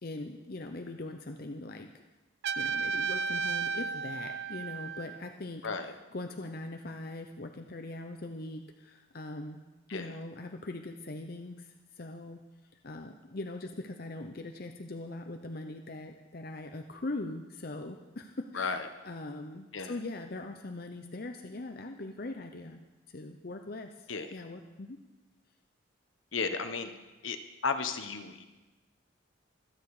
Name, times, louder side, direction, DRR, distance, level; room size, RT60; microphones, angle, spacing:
voice 1, 0.0-1.9 2.5-9.6 9.9-12.4 12.8-22.8 23.1-25.0, left 2 dB, 45° left, 5 dB, 0.7 m, -41 dB
Trumpet, 2.4-5.3, right 5 dB, 55° right, 0.5 m, -33 dB
voice 2, 18.5-18.9 19.7-19.9 24.1-24.3 26.3-26.9 27.2-27.4 27.6-28.4, left 4 dB, 75° left, 8 dB, 1.2 m, -33 dB
24.5 x 9.2 x 4.9 m, 1.1 s
head